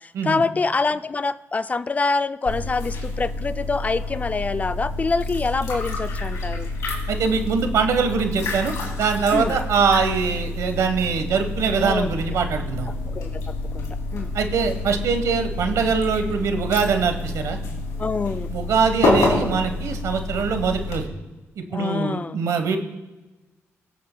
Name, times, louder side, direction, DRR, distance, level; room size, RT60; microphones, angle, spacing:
voice 1, 0.0-6.7 9.3-9.5 11.8-12.1 13.1-14.3 18.0-18.5 21.7-22.4, left 4 dB, 30° left, 13 dB, 0.3 m, -25 dB
sound 1, 2.4-21.0, left 2 dB, 90° left, 2.6 m, -28 dB
voice 2, 7.1-8.7 9.0-12.9 14.3-17.6 18.5-21.1 21.6-22.8, right 5 dB, 75° right, 6 dB, 1.1 m, -23 dB
19.5 x 7.3 x 2.2 m, 1.2 s
cardioid pair, 90°, 5 cm